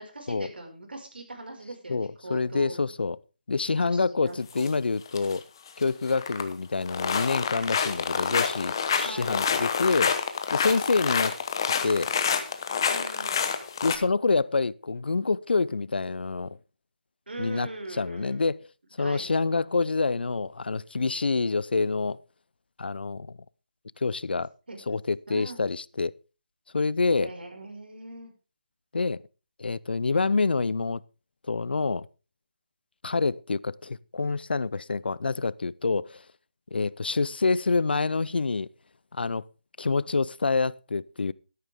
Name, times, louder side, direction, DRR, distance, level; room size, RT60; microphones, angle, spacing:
voice 1, 0.0-2.8 3.8-4.7 8.9-9.4 12.9-13.4 17.3-18.4 19.0-19.3 24.7-24.8 25.3-25.6 27.2-28.3, right 2 dB, 90° right, 5.5 m, -41 dB
voice 2, 1.9-3.2 3.5-5.4 5.8-10.2 10.5-11.4 11.8-12.1 13.8-16.6 17.4-18.7 19.0-22.2 22.8-23.4 24.0-24.5 24.9-26.1 26.7-27.3 28.9-29.2 29.6-31.0 31.5-32.1 33.0-36.2 36.7-38.7 39.1-39.5 39.8-41.3, left 4 dB, 85° left, 0.6 m, -27 dB
sound 1, 4.5-4.7 5.1-5.4 5.7-6.5 6.8-14.0, left 6 dB, 25° left, 1.0 m, -27 dB
12.5 x 11.5 x 3.6 m
hypercardioid pair, 175°, 5 cm